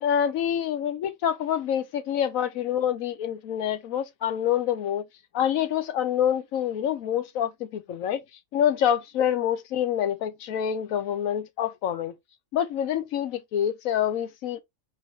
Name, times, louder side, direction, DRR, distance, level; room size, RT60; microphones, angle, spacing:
voice 1, 0.0-5.0 5.3-8.2 8.5-12.1 12.5-14.6, left 9 dB, 85° left, 1.1 m, -26 dB
4.9 x 3.0 x 3.2 m
omnidirectional pair, 1.4 m